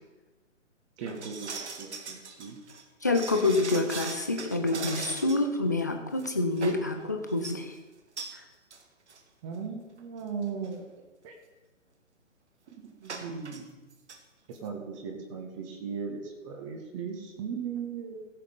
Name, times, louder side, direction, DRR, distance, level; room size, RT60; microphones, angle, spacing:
voice 1, 1.0-2.6 9.4-10.9 11.2-11.3 12.8-13.8 14.5-18.3, right 6 dB, 25° right, 3 dB, 1.5 m, -38 dB
sound 1, 1.1-5.5 5.8-5.9 6.2-6.9 7.3-7.6 8.2-8.4 8.7-8.8 9.1-9.2 10.0-10.1 10.4-10.7 13.1-13.6 13.9-14.2 14.5-14.6, right 4 dB, 60° right, 1.6 m, -40 dB
voice 2, 3.0-7.8 8.3-8.4, left 2 dB, 15° left, 5 dB, 0.4 m, -27 dB
16.0 x 7.2 x 5.3 m, 1.1 s
figure-of-eight pair, 135°, 39 cm